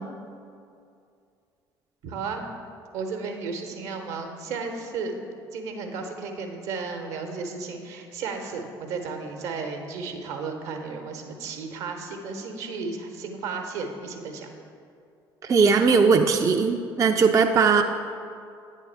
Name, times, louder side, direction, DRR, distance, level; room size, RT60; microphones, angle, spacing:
voice 1, 2.0-2.5 2.9-5.1 5.5-14.5 17.0-17.2, right 4 dB, 65° right, 4 dB, 0.9 m, -34 dB
voice 2, 15.4-17.8, right 5 dB, 25° right, 4 dB, 0.4 m, -19 dB
8.8 x 3.6 x 5.5 m, 2.4 s
figure-of-eight pair, 55°, 12 cm